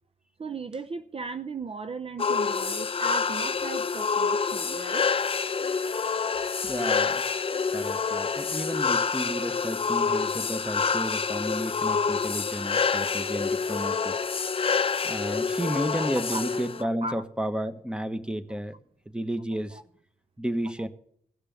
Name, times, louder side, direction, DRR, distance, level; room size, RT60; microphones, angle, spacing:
voice 1, 0.4-5.1 15.8-16.4 17.0-17.2 18.5-18.6 19.7-19.8, right 4 dB, 45° right, 11 dB, 0.7 m, -37 dB
sound 1, 2.2-16.8, left 5 dB, 40° left, 0.6 m, -27 dB
voice 2, 6.6-7.3 7.7-14.1 15.0-18.8 19.1-19.8 20.4-20.9, equal, 5° right, 11 dB, 1.3 m, -32 dB
17.0 x 6.7 x 7.2 m, 0.67 s
cardioid pair, 50°, 14 cm